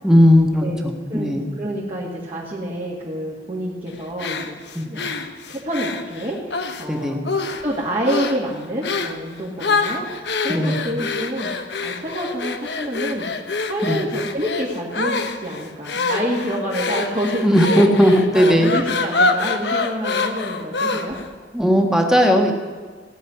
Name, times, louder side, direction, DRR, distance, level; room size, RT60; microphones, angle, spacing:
voice 1, 0.0-1.4 4.7-4.9 6.9-7.2 10.5-10.8 13.9-14.0 17.4-18.7 21.5-22.5, equal, 5° right, 2 dB, 1.5 m, -16 dB
voice 2, 0.6-4.6 4.9-5.2 5.6-11.5 11.8-13.3 13.6-21.2, equal, 35° right, -5 dB, 2.1 m, -28 dB
sound 1, 4.2-6.9 7.2-7.7 8.0-8.4 8.8-9.2 9.6-21.3, left 3 dB, 75° left, 1.0 m, -25 dB
17.0 x 6.5 x 9.8 m, 1.5 s
head